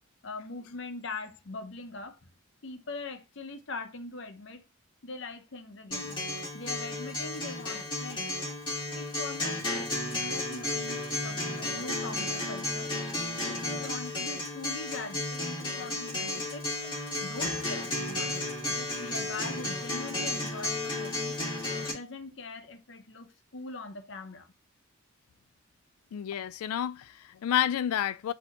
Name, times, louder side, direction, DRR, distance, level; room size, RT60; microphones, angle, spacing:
voice 1, 0.2-2.2 2.6-4.6 5.0-6.2 6.5-8.4 8.9-12.9 13.4-16.7 17.2-18.3 18.7-21.4 21.7-24.5, left 3 dB, 55° left, 0.7 m, -42 dB
Acoustic guitar, 5.9-21.9, left 2 dB, 20° left, 1.4 m, -33 dB
voice 2, 26.1-28.3, left 10 dB, 85° left, 0.3 m, -30 dB
4.2 x 2.8 x 4.2 m
head